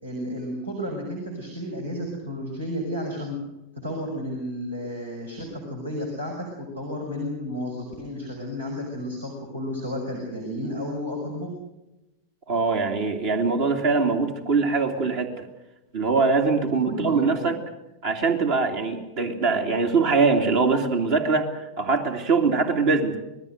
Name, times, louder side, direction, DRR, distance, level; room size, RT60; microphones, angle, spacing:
voice 1, 0.0-3.3 3.8-11.5 16.9-17.5, equal, 80° right, 0 dB, 5.7 m, -32 dB
voice 2, 12.5-15.5 15.9-17.6 18.0-23.2, right 4 dB, 50° right, 4 dB, 2.7 m, -22 dB
26.5 x 20.5 x 6.5 m, 0.97 s
figure-of-eight pair, 90°, 0 cm